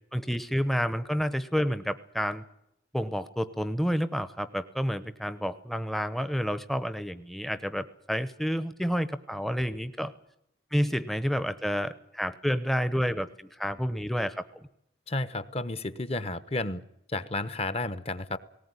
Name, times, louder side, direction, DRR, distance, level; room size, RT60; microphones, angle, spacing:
voice 1, 0.1-2.4 2.9-10.1 10.7-14.4, equal, ahead, 12 dB, 0.8 m, -29 dB
voice 2, 15.1-16.8 17.1-18.4, left 2 dB, 35° left, 14 dB, 0.9 m, -32 dB
19.0 x 18.5 x 9.7 m, 0.81 s
head